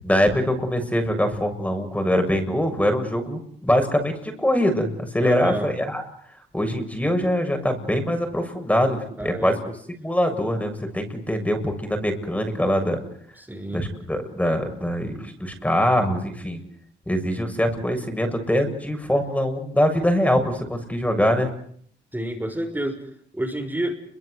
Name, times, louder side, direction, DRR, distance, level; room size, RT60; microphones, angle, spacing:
voice 1, 0.0-6.0 6.5-9.6 10.0-13.0 13.7-16.6 17.1-21.5, equal, 5° left, 6 dB, 7.3 m, -23 dB
voice 2, 5.2-5.7 9.2-9.6 13.4-13.8 22.1-23.0 23.3-23.9, right 1 dB, 10° right, 2 dB, 6.2 m, -29 dB
30.0 x 24.0 x 8.2 m, 0.65 s
cardioid pair, 90°, 20 cm